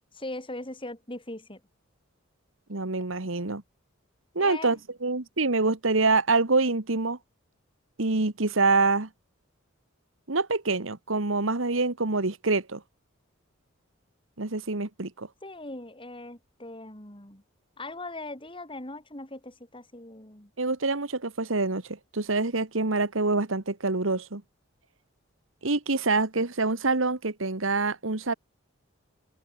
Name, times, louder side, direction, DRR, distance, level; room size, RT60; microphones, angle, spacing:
voice 1, 0.1-1.6 4.4-4.8 15.4-17.4 17.8-20.5, left 2 dB, 25° left, 4.6 m, -40 dB
voice 2, 2.7-3.6 4.3-7.2 8.0-9.1 10.3-12.8 14.4-15.3 20.6-24.4 25.6-28.3, right 3 dB, 70° right, 1.7 m, -26 dB
head